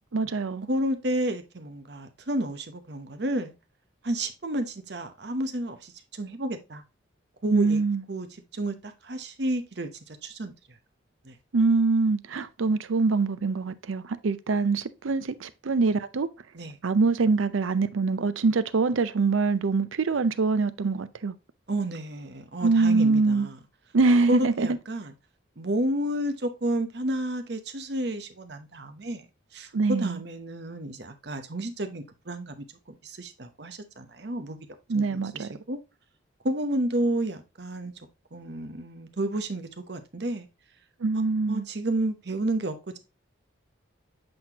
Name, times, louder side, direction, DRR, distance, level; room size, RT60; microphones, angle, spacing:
voice 1, 0.1-0.7 7.5-8.0 11.5-16.3 16.8-21.3 22.6-23.5 23.9-24.8 29.7-30.2 34.9-35.5 41.0-41.7, right 4 dB, 90° right, 0.5 m, -24 dB
voice 2, 0.7-3.5 4.0-6.8 7.4-7.8 8.1-8.3 8.5-10.5 11.2-11.3 16.5-16.8 21.7-23.6 24.3-25.1 25.6-29.2 29.5-32.6 33.0-34.6 34.9-35.8 36.4-37.9 38.3-40.5 41.5-43.0, right 1 dB, 55° right, 0.9 m, -31 dB
7.7 x 4.3 x 2.9 m
head